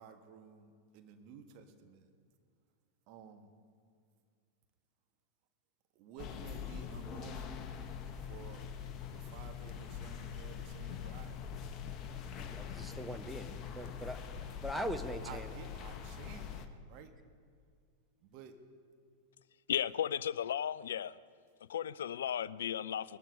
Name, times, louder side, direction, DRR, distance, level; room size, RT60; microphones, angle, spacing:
voice 1, 0.0-2.1 3.1-3.5 5.9-7.7 8.2-8.7 9.1-11.4 15.2-17.1 18.2-18.6, right 7 dB, 45° right, 1.4 m, -53 dB
sound 1, 6.2-16.7, left 7 dB, 35° left, 1.1 m, -43 dB
voice 2, 12.5-14.2 14.6-15.5, equal, ahead, 0.8 m, -41 dB
voice 3, 19.7-21.2 21.7-23.2, left 9 dB, 65° left, 0.4 m, -35 dB
20.0 x 12.0 x 5.3 m
figure-of-eight pair, 90°, 0 cm